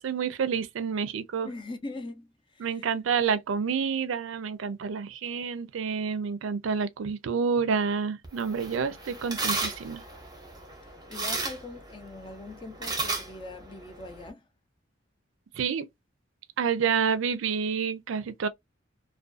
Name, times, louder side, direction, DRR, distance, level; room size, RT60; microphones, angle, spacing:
voice 1, 0.0-1.5 2.6-10.0 15.6-15.9 16.6-18.5, right 6 dB, 85° right, 0.4 m, -28 dB
voice 2, 1.4-2.9 10.8-14.5, left 2 dB, 25° left, 0.4 m, -42 dB
sound 1, 8.2-14.3, right 3 dB, 20° right, 0.6 m, -35 dB
2.4 x 2.2 x 2.4 m
head